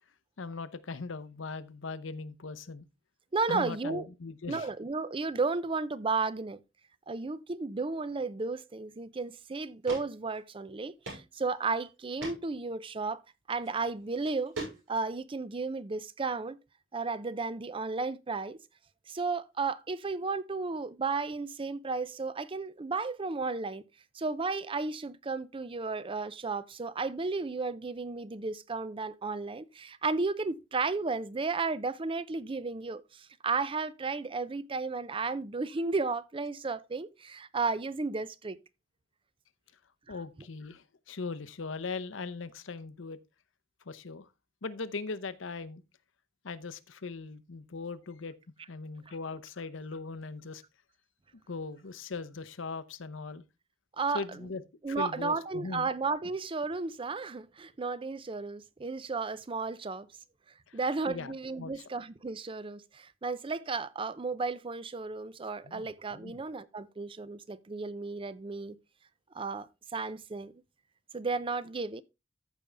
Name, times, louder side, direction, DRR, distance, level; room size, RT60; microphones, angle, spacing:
voice 1, 0.4-2.9 3.5-4.7 40.1-43.2 43.9-44.3 44.6-45.8 46.4-48.4 48.7-50.6 51.5-53.4 54.1-54.6 54.9-55.9 60.7-60.8 61.1-61.7 65.6-66.4, left 4 dB, 75° left, 0.8 m, -39 dB
voice 2, 3.3-4.1 4.5-6.6 7.1-13.2 13.5-14.6 14.9-16.6 16.9-18.6 19.1-23.8 24.1-38.6 54.0-54.5 54.8-60.1 60.7-68.8 69.3-70.5 71.1-72.0, right 4 dB, 25° right, 0.5 m, -33 dB
sound 1, 9.2-9.3 9.8-10.0 10.3-10.4 11.0-11.2 11.6-11.7 12.2-12.4 13.5-13.7 14.2-15.1, right 2 dB, 90° right, 5.6 m, -39 dB
14.0 x 5.3 x 3.3 m
head